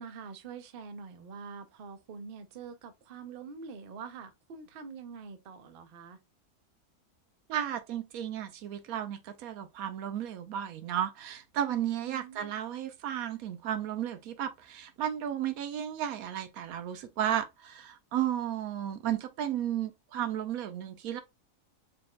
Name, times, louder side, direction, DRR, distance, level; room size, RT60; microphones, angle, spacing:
voice 1, 0.0-6.2 12.0-12.5, right 5 dB, 55° right, 0.7 m, -45 dB
voice 2, 7.5-21.2, right 10 dB, 85° right, 1.1 m, -33 dB
4.2 x 3.2 x 2.3 m
omnidirectional pair, 1.5 m